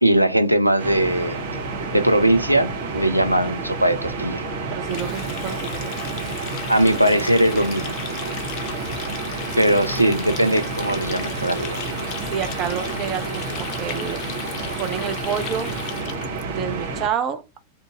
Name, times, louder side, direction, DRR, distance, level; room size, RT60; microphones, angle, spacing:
voice 1, 0.0-1.4 1.9-4.4 6.7-7.9 9.6-11.9, right 1 dB, 90° right, 0.4 m, -20 dB
sound 1, 0.8-17.1, right 3 dB, 55° right, 1.1 m, -30 dB
voice 2, 4.7-5.9 12.3-14.2 14.8-15.7 16.4-17.4, right 8 dB, 35° right, 0.6 m, -28 dB
Water tap faucet, 4.8-16.4, left 8 dB, 40° left, 0.5 m, -36 dB
2.7 x 2.6 x 3.4 m
figure-of-eight pair, 90°, 0 cm